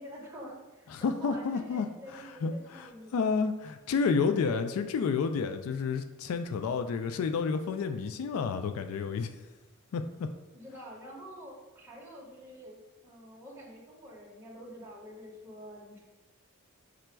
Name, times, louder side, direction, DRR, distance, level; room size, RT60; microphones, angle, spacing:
voice 1, 0.0-3.4 10.5-16.0, equal, 10° right, -5 dB, 0.9 m, -47 dB
voice 2, 0.9-9.3 9.9-10.3, left 5 dB, 80° left, 8 dB, 0.3 m, -30 dB
5.0 x 2.2 x 4.4 m, 1.1 s
head